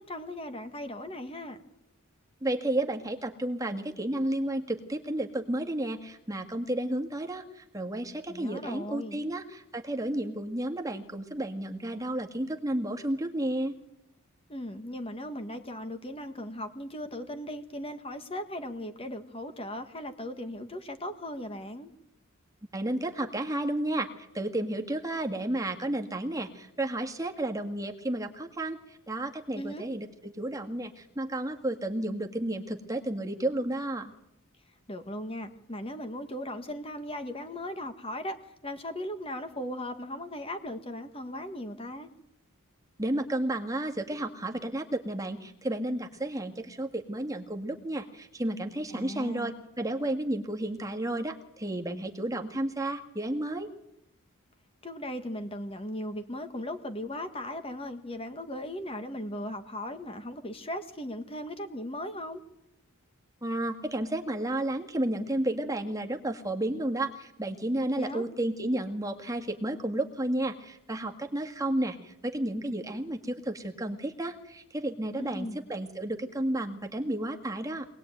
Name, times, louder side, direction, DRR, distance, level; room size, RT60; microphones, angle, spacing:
voice 1, 0.0-1.6 8.3-9.2 14.5-21.9 29.5-29.9 34.9-38.4 38.6-42.1 48.9-49.6 54.8-62.4 68.0-68.3 75.2-75.6, left 1 dB, 25° left, 7 dB, 1.5 m, -37 dB
voice 2, 2.4-13.7 22.7-24.1 24.3-34.1 43.0-53.7 63.4-77.9, right 1 dB, 15° right, 4 dB, 1.8 m, -32 dB
24.5 x 19.5 x 9.2 m, 0.83 s
head